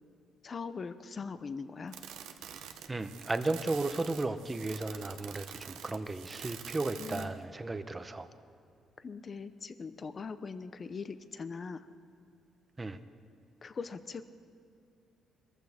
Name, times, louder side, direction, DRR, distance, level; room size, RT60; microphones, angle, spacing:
voice 1, 0.4-2.0 7.0-7.4 9.0-11.9 13.6-14.2, left 5 dB, 40° left, 12 dB, 0.7 m, -41 dB
sound 1, 1.9-7.4, right 9 dB, 90° right, 0.8 m, -47 dB
voice 2, 2.9-8.3 12.8-13.0, right 2 dB, 20° right, 10 dB, 0.8 m, -34 dB
21.5 x 14.5 x 3.6 m, 2.6 s
cardioid pair, 90°, 0 cm